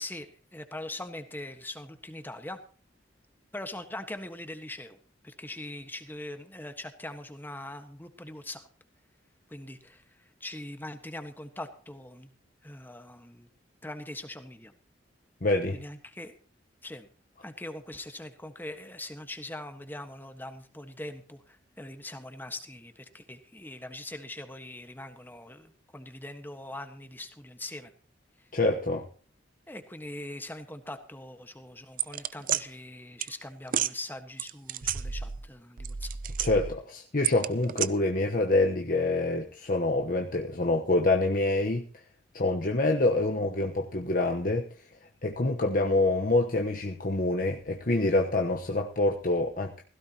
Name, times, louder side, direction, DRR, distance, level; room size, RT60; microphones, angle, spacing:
voice 1, 0.0-2.6 3.5-5.0 5.2-8.7 9.5-12.3 12.6-13.5 13.8-14.7 15.7-16.4 16.8-17.1 17.4-27.9 29.7-36.2, left 1 dB, 10° left, 8 dB, 1.4 m, -42 dB
voice 2, 15.4-15.8 28.5-29.1 36.4-41.9 42.3-44.9 45.2-49.7, left 2 dB, 50° left, 3 dB, 1.1 m, -26 dB
sound 1, 32.0-32.6 33.2-33.3 33.7-33.9 34.4-35.5 35.8-36.8 37.2-37.9, right 9 dB, 50° right, 0.6 m, -30 dB
16.5 x 16.0 x 2.9 m, 0.40 s
head